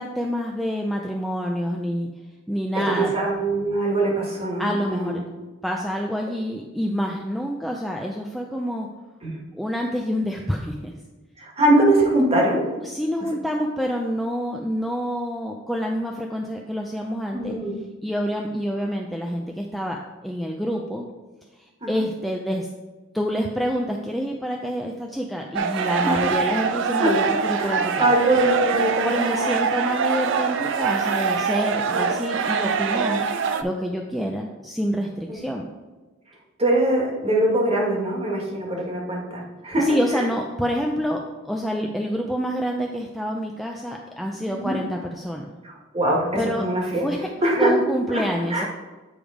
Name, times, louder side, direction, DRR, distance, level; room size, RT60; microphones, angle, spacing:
voice 1, 0.0-2.1 2.5-3.1 4.6-5.2 5.6-8.9 9.5-10.9 12.6-17.5 18.0-21.1 21.9-22.7 23.1-28.1 29.0-33.3 33.6-35.7 39.8-45.5 46.4-46.7 47.0-47.3 47.6-48.7, equal, ahead, 0 dB, 0.4 m, -27 dB
voice 2, 3.0-5.2 9.2-9.4 11.4-12.7 17.3-17.7 21.8-22.0 26.0-26.3 27.0-27.1 27.6-29.6 31.9-32.1 35.3-35.4 36.6-40.2 44.5-44.7 45.6-47.0 47.4-47.8 48.1-48.2 48.5-48.7, right 1 dB, 30° right, -1 dB, 1.5 m, -22 dB
sound 1, 25.5-33.6, right 6 dB, 65° right, 0.4 m, -24 dB
9.0 x 3.4 x 4.9 m, 1.2 s
head